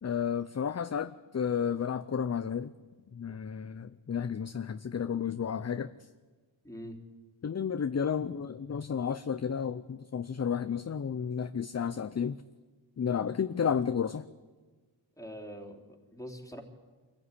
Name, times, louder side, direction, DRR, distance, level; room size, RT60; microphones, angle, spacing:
voice 1, 0.0-2.7 3.1-5.9 7.4-12.4 13.0-14.2, left 7 dB, 35° left, 0.7 m, -32 dB
voice 2, 6.6-7.0 15.2-16.6, equal, 5° left, 3.5 m, -44 dB
25.0 x 15.0 x 9.9 m
wide cardioid pair, 90°, 48 cm